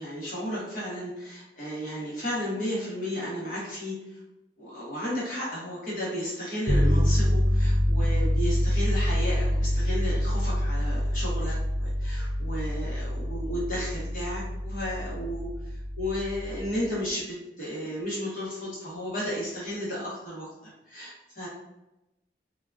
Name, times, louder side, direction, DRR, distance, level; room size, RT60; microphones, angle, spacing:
voice 1, 0.0-4.2 4.6-20.5 20.9-21.5, equal, 50° left, -7 dB, 1.1 m, -33 dB
sound 1, 6.7-16.8, equal, 25° right, 0.4 m, -26 dB
3.8 x 2.3 x 2.5 m, 0.95 s
head